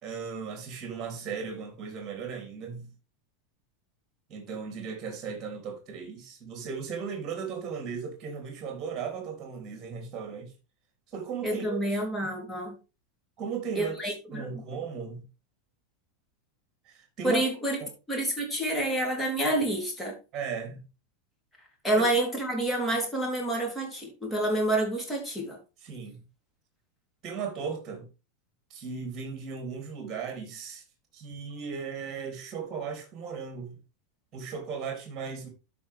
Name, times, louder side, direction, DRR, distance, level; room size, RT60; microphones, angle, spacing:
voice 1, 0.0-2.9 4.3-10.5 11.1-11.8 13.4-13.9 14.3-15.3 16.8-17.4 17.8-17.9 20.3-20.8 22.0-22.1 25.8-26.2 27.2-28.0 28.7-30.8 31.1-33.8 34.3-35.5, right 6 dB, 35° right, 3.3 m, -36 dB
voice 2, 11.4-12.8 13.8-14.6 17.2-17.8 18.1-20.1 21.8-25.6, right 1 dB, 5° left, 3.7 m, -28 dB
12.5 x 5.3 x 3.6 m
figure-of-eight pair, 85°, 0 cm